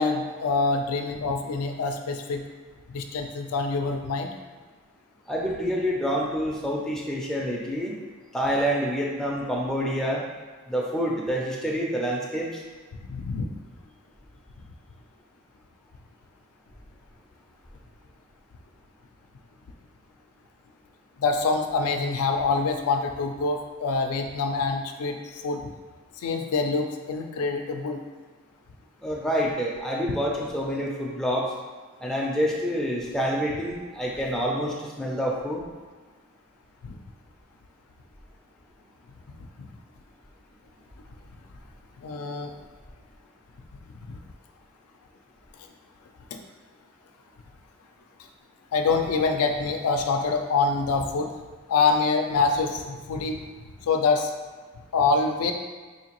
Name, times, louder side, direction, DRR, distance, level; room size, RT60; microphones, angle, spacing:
voice 1, 0.0-2.4 2.9-4.3 13.1-13.4 21.2-25.2 25.4-25.6 26.2-28.0 36.8-36.9 42.0-42.5 46.3-46.4 48.7-51.3 51.7-53.4 53.8-54.3 54.9-55.5, left 4 dB, 90° left, 4 dB, 0.4 m, -25 dB
voice 2, 5.3-8.0 8.3-10.2 10.7-12.6 29.0-31.5 32.0-35.6, equal, ahead, -3 dB, 0.4 m, -27 dB
3.8 x 2.8 x 2.9 m, 1.5 s
head